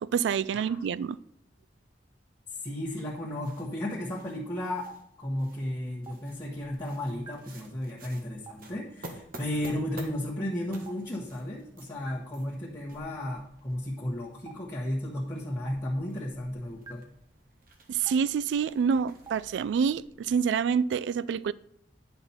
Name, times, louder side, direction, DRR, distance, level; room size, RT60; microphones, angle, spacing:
voice 1, 0.0-1.2 17.9-21.5, right 6 dB, 80° right, 0.3 m, -27 dB
voice 2, 0.5-0.9 2.6-4.9 5.2-17.0, left 1 dB, 20° left, 1.4 m, -34 dB
sound 1, 2.5-20.1, right 2 dB, 55° right, 1.4 m, -53 dB
Stream, 4.9-5.0 6.1-6.2 7.3-7.4 8.5-8.6 9.7-9.8 10.9-11.0 12.1-12.2 13.3-13.4 14.5-14.6 15.7-15.8 16.9-17.0 18.1-18.2 19.3-19.4, right 6 dB, 20° right, 0.6 m, -43 dB
10.0 x 5.7 x 4.3 m
head